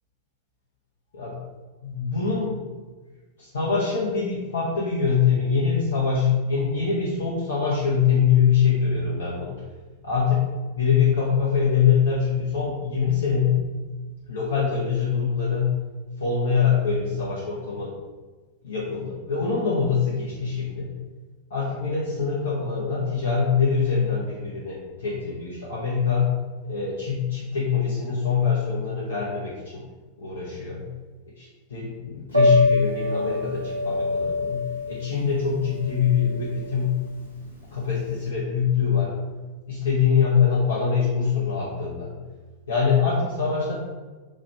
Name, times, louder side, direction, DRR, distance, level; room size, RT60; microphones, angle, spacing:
voice 1, 1.8-2.6 3.4-9.6 10.0-10.4 10.8-13.6 14.3-15.7 16.2-17.9 18.6-20.9 21.5-26.3 26.7-29.9 30.2-30.8 31.4-36.9 37.7-39.1 39.7-42.1 42.7-43.7, left 6 dB, 65° left, -6 dB, 0.9 m, -24 dB
Piano, 32.3-38.2, left 2 dB, 90° right, 1.0 m, -25 dB
5.0 x 2.5 x 4.2 m, 1.3 s
figure-of-eight pair, 90°, 0 cm